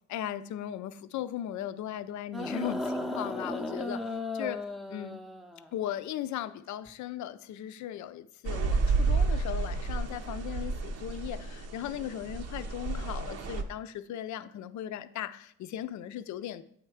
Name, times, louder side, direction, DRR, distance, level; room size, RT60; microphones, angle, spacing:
voice 1, 0.1-4.0 4.3-4.6 4.9-5.2 5.7-16.6, left 11 dB, 70° left, 0.5 m, -37 dB
sound 1, 2.3-5.7 6.9-7.0, left 2 dB, ahead, 0.6 m, -35 dB
sound 2, 8.4-13.6, right 4 dB, 55° right, 0.7 m, -31 dB
8.6 x 3.3 x 4.8 m
cardioid pair, 90°, 30 cm